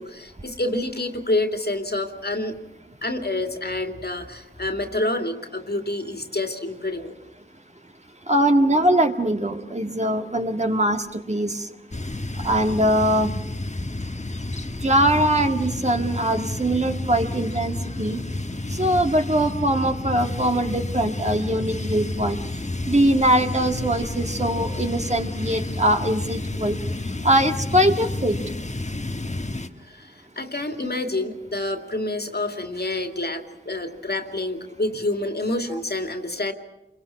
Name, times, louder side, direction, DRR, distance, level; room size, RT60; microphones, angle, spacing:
voice 1, 0.0-2.5 3.0-7.1 29.9-36.5, left 2 dB, 50° left, 5 dB, 2.6 m, -28 dB
voice 2, 8.3-11.6 12.4-13.3 14.8-18.2 18.8-22.4 22.9-26.8 27.2-28.4 35.7-35.8, right 1 dB, 35° right, 4 dB, 1.9 m, -22 dB
sound 1, 11.9-29.7, left 2 dB, 35° left, 1.3 m, -30 dB
28.0 x 22.5 x 5.9 m, 0.92 s
wide cardioid pair, 65°, 21 cm